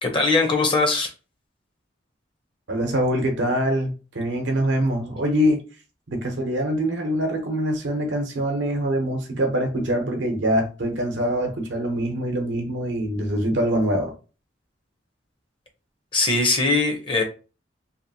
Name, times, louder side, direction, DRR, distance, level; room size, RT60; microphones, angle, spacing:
voice 1, 0.0-1.1 16.1-17.2, left 3 dB, 30° left, 0.6 m, -21 dB
voice 2, 2.7-5.6 6.1-14.1, equal, 90° right, 0.8 m, -24 dB
2.8 x 2.5 x 2.7 m
head